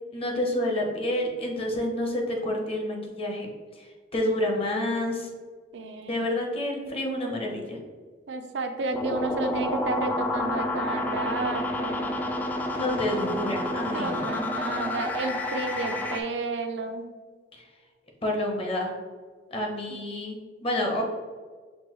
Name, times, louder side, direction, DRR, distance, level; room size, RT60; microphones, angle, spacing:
voice 1, 0.1-3.5 3.8-3.9 4.1-5.3 6.1-7.8 12.7-14.4 17.5-17.6 18.2-18.9 19.5-21.0, left 1 dB, 35° left, 0 dB, 0.8 m, -29 dB
voice 2, 5.7-6.4 8.3-12.1 13.9-17.1 19.9-20.0, right 3 dB, 75° right, 6 dB, 0.4 m, -32 dB
sound 1, 8.9-16.2, left 1 dB, 10° left, 0.3 m, -29 dB
5.9 x 2.2 x 3.0 m, 1.5 s
head